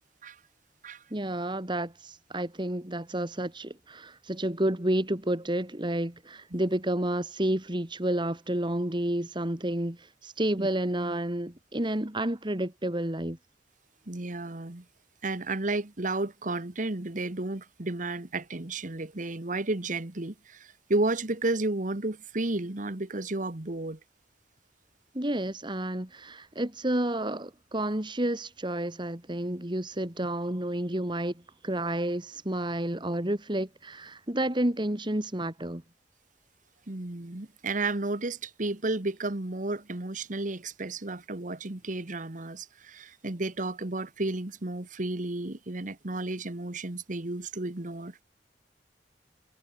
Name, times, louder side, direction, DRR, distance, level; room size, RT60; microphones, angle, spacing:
voice 1, 1.1-13.4 25.1-31.3 31.6-35.8, right 1 dB, 25° right, 2.3 m, -30 dB
voice 2, 14.1-14.8 15.2-24.0 30.2-30.3 36.9-48.2, right 2 dB, 45° right, 1.5 m, -32 dB
head